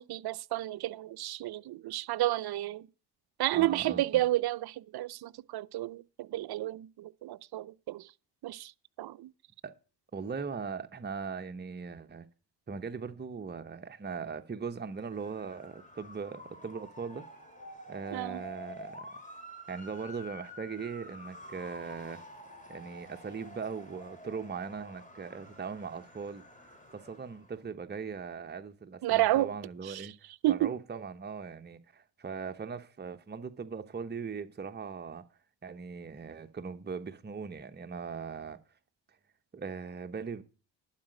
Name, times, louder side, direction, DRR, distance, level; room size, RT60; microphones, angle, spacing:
voice 1, 0.0-2.9 3.4-8.1 8.4-8.7 9.0-9.3 18.1-18.4 29.0-29.5 29.8-30.1 30.4-30.7, right 15 dB, 50° right, 0.6 m, -31 dB
voice 2, 3.5-4.2 9.6-9.7 10.1-12.3 12.7-17.2 17.9-19.1 19.7-22.3 22.7-26.4 26.9-30.1 30.5-35.2 35.6-38.6 39.5-40.4, right 5 dB, 20° right, 1.0 m, -39 dB
Motor vehicle (road) / Siren, 14.9-27.6, equal, 15° left, 3.4 m, -49 dB
11.5 x 5.0 x 7.5 m
supercardioid pair, 55°, 49 cm